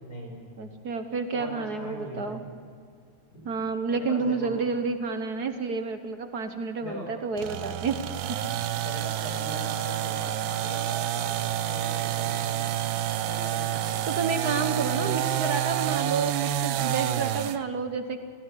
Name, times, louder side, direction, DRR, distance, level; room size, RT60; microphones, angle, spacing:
voice 1, 0.0-0.4 1.3-2.4 3.3-3.4 3.9-4.5 6.8-7.1 8.8-12.7 13.2-14.0 14.9-15.2, equal, 55° left, 1 dB, 6.3 m, -40 dB
voice 2, 0.6-2.4 3.4-8.0 8.3-8.4 14.1-18.2, right 4 dB, 55° right, 8 dB, 1.6 m, -30 dB
sound 1, 7.4-17.6, right 11 dB, 90° right, 1.6 m, -29 dB
28.5 x 17.0 x 9.8 m, 2.2 s
omnidirectional pair, 2.1 m